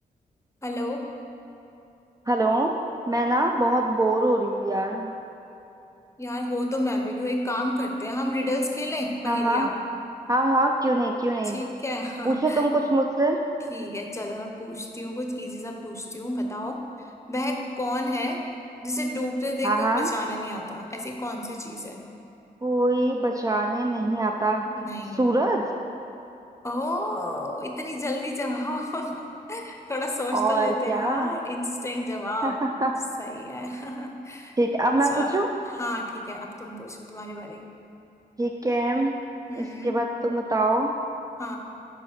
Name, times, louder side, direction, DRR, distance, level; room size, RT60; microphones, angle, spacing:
voice 1, 0.6-1.0 6.2-9.7 11.4-12.7 13.7-18.4 18.8-22.0 24.7-25.4 26.6-32.6 33.2-34.5 35.1-35.4 35.7-37.7 39.5-40.0 41.4-41.6, left 1 dB, 15° left, 2 dB, 0.8 m, -31 dB
voice 2, 2.3-2.7 3.1-5.1 9.3-9.7 10.3-11.6 12.3-13.4 19.6-20.1 22.6-24.6 25.2-25.6 30.3-31.3 32.4-32.9 34.6-35.5 38.4-39.2 39.6-40.9, right 1 dB, 20° right, 2 dB, 0.4 m, -23 dB
4.9 x 4.8 x 5.8 m, 2.8 s
cardioid pair, 65°, 17 cm